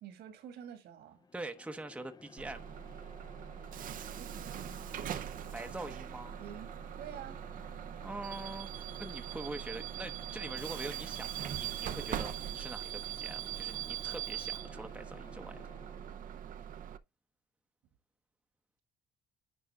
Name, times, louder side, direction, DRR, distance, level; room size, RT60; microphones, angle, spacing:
voice 1, 0.0-1.2 4.0-5.0 6.3-6.7 7.0-7.4, right 9 dB, 75° right, 2.2 m, -48 dB
sound 1, 1.1-16.4, left 4 dB, 25° left, 0.7 m, -55 dB
voice 2, 1.3-2.6 5.5-6.4 8.0-15.6, right 2 dB, 5° right, 0.9 m, -44 dB
Bus / Alarm, 2.4-17.0, right 11 dB, 55° right, 0.7 m, -41 dB
10.0 x 3.7 x 3.7 m
cardioid pair, 110°, 17 cm